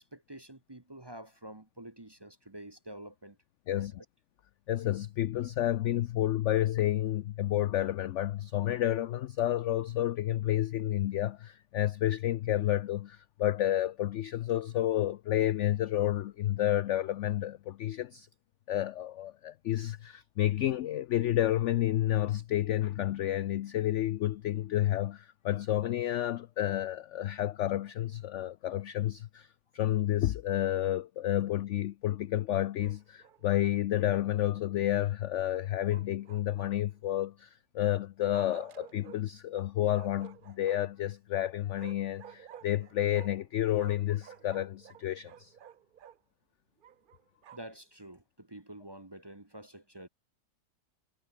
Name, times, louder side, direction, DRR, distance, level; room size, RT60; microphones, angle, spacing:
voice 1, 0.0-3.4 3.7-4.0 47.5-50.1, right 1 dB, 15° right, 1.1 m, -48 dB
voice 2, 4.7-18.3 18.7-29.5 29.7-45.5, left 13 dB, 70° left, 0.7 m, -30 dB
Bark, 32.8-33.4 35.9-37.0 38.3-39.2 39.9-41.0 41.8-43.5 43.7-46.2 46.8-47.8, right 9 dB, 85° right, 0.4 m, -52 dB
omnidirectional pair, 1.7 m